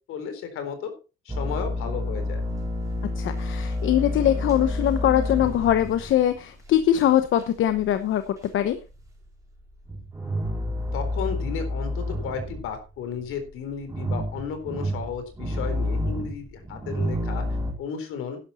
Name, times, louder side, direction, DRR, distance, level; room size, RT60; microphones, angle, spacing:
voice 1, 0.1-0.9 1.3-2.4 10.9-17.4 17.8-18.4, left 6 dB, 85° left, 8 dB, 3.9 m, -33 dB
sound 1, 1.3-8.0 8.2-9.2 9.6-12.8 13.1-17.7, left 1 dB, 15° right, 4.1 m, -30 dB
voice 2, 3.2-8.2 8.5-8.8, left 11 dB, 70° left, 10 dB, 1.0 m, -22 dB
11.5 x 11.5 x 4.2 m, 0.31 s
cardioid pair, 160°, 21 cm